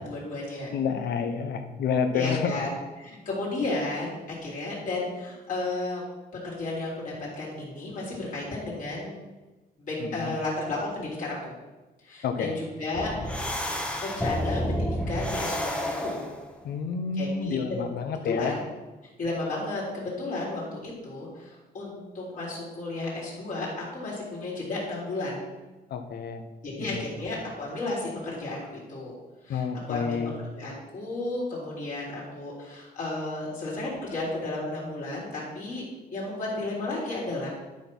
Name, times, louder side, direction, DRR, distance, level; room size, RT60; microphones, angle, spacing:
voice 1, 0.0-0.7 2.1-2.7 3.0-6.0 6.4-9.1 9.8-11.5 12.0-13.4 14.0-16.3 17.1-17.9 18.2-18.6 19.2-23.7 23.9-25.4 26.6-29.2 29.4-30.2 30.5-35.8 36.1-37.5, left 2 dB, 55° left, -6 dB, 3.4 m, -33 dB
voice 2, 0.7-2.6 10.0-10.3 12.2-12.6 16.6-18.5 25.9-26.4 26.8-27.1 29.5-30.3, left 6 dB, 85° left, 8 dB, 1.0 m, -29 dB
sound 1, 12.9-16.5, equal, 5° left, 0.9 m, -30 dB
11.5 x 4.4 x 6.1 m, 1.2 s
wide cardioid pair, 170°, 16 cm